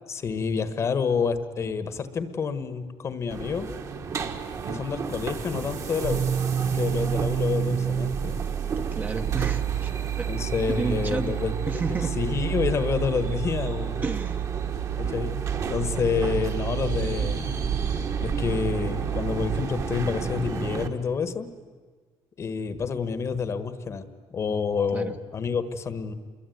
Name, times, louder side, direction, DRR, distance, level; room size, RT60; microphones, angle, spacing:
voice 1, 0.1-3.7 4.7-6.2 6.6-8.4 10.3-14.0 15.0-15.4 15.7-17.5 18.2-21.5 22.4-24.1 24.3-26.1, left 5 dB, 30° left, 12 dB, 1.4 m, -28 dB
sound 1, 3.3-20.9, right 5 dB, 35° right, 1.6 m, -33 dB
sound 2, 6.0-19.7, right 10 dB, 55° right, 0.7 m, -30 dB
voice 2, 8.8-10.3 10.7-11.4 11.7-12.1 14.0-14.5 24.9-25.2, right 4 dB, 20° right, 6 dB, 1.0 m, -31 dB
28.0 x 22.5 x 9.4 m, 1.5 s
cardioid pair, 175°, 9 cm